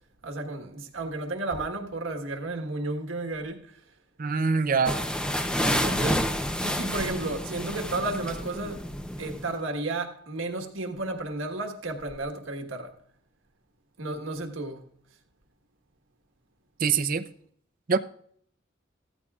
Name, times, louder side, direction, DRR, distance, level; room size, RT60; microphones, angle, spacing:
voice 1, 0.2-3.7 5.6-6.3 6.6-8.9 9.2-12.9 14.0-14.9, right 2 dB, 85° right, 1.5 m, -33 dB
voice 2, 4.2-5.0 16.8-17.3 17.9-18.0, right 5 dB, 45° right, 0.6 m, -24 dB
sound 1, 4.9-9.5, equal, 5° left, 0.7 m, -29 dB
16.0 x 14.0 x 2.4 m
head